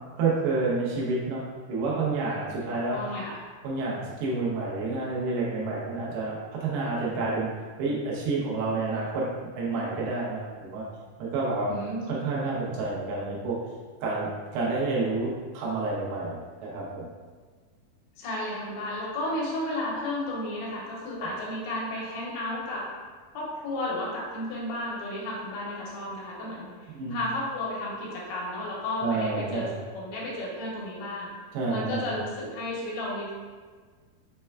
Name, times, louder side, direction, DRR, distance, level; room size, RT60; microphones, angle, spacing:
voice 1, 0.2-3.0 3.6-7.5 7.8-9.3 9.6-10.9 11.2-11.7 12.1-13.6 14.0-17.1 26.9-27.2 29.0-29.7 31.5-32.1, right 3 dB, 80° right, -5 dB, 2.7 m, -29 dB
voice 2, 2.7-3.4 11.7-12.1 18.2-22.9 23.3-31.3 31.7-33.3, left 1 dB, 85° left, -4 dB, 2.8 m, -33 dB
6.4 x 2.2 x 2.2 m, 1.5 s
omnidirectional pair, 4.5 m